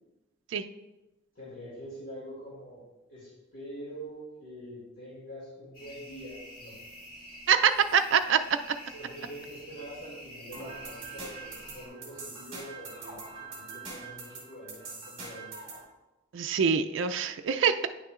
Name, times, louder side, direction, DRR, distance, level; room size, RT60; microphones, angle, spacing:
voice 1, 1.3-2.8 3.1-6.8 8.8-15.5, equal, 60° left, -8 dB, 2.5 m, -45 dB
sound 1, 5.7-11.9, equal, 45° left, 1.7 m, -48 dB
voice 2, 7.5-8.6 16.3-17.9, right 7 dB, 65° right, 7 dB, 0.4 m, -24 dB
sound 2, 10.5-15.8, right 3 dB, 25° right, 2.3 m, -43 dB
9.6 x 6.4 x 2.4 m, 1.0 s
head